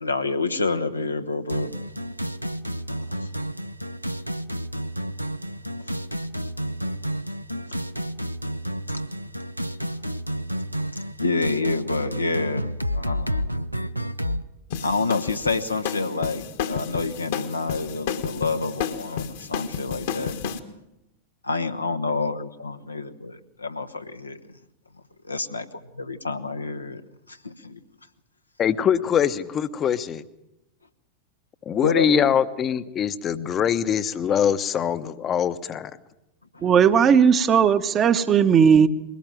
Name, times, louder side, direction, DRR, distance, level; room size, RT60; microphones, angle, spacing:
voice 1, 0.0-1.7 2.7-3.3 8.9-9.0 9.8-10.0 10.9-13.5 14.8-20.4 21.4-24.4 25.3-25.7 25.9-27.0 27.3-27.8 31.8-32.3 36.5-36.6, left 3 dB, 80° left, 1.1 m, -28 dB
sound 1, 1.5-14.4, equal, 90° right, 0.7 m, -30 dB
sound 2, 14.7-20.6, left 7 dB, 55° left, 1.6 m, -31 dB
voice 2, 28.6-30.2 31.7-35.9, left 8 dB, 25° left, 1.0 m, -23 dB
voice 3, 36.6-38.9, right 7 dB, 25° right, 1.1 m, -17 dB
21.5 x 18.0 x 7.6 m
figure-of-eight pair, 90°, 0 cm